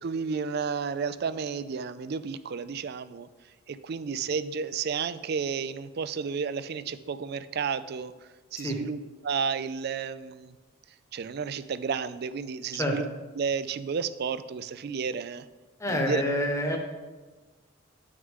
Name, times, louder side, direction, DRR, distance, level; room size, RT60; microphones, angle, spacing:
voice 1, 0.0-3.3 3.7-8.1 8.5-10.6 11.1-13.1 13.4-15.5 15.9-16.2, right 6 dB, 50° right, 14 dB, 0.3 m, -32 dB
voice 2, 15.8-16.8, left 1 dB, 15° left, 2 dB, 1.0 m, -27 dB
9.4 x 6.4 x 3.6 m, 1.3 s
head